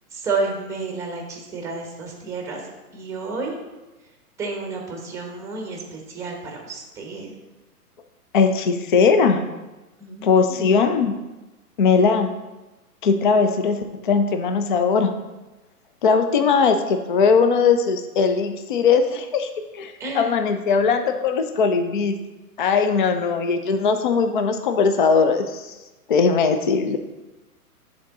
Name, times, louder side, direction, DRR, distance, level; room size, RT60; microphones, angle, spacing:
voice 1, 0.1-2.6 2.9-3.6 4.4-7.3 10.0-10.7 20.0-20.4, right 3 dB, 5° right, 1 dB, 0.9 m, -30 dB
voice 2, 8.3-9.4 10.2-11.1 11.8-12.3 13.0-15.1 16.0-22.2 22.6-25.7 26.1-27.0, left 5 dB, 35° left, 7 dB, 0.4 m, -19 dB
10.5 x 3.8 x 3.5 m, 1.1 s
hypercardioid pair, 140°, 46 cm